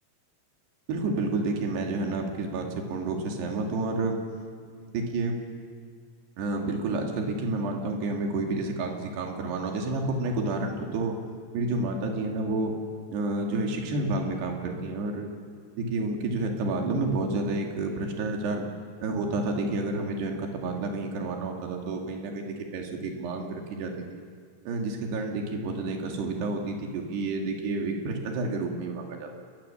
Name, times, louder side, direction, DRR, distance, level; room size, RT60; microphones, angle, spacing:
voice 1, 0.9-4.2 4.7-5.4 6.4-11.2 11.5-12.8 13.1-15.3 15.7-18.7 19.0-24.2 24.7-29.3, right 2 dB, 65° right, 1 dB, 4.4 m, -30 dB
29.0 x 20.5 x 7.2 m, 2.1 s
omnidirectional pair, 5.4 m